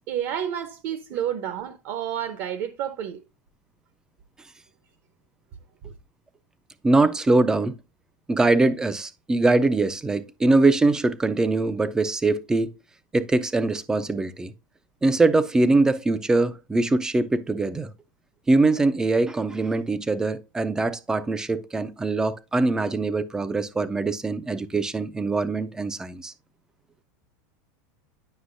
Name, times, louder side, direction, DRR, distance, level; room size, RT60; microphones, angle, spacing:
voice 1, 0.1-3.2, right 10 dB, 45° right, 0.7 m, -30 dB
voice 2, 6.8-7.8 8.3-12.7 13.1-14.5 15.0-17.9 18.5-26.3, right 2 dB, 5° right, 0.4 m, -22 dB
9.6 x 6.0 x 2.5 m
supercardioid pair, 170°, 10 cm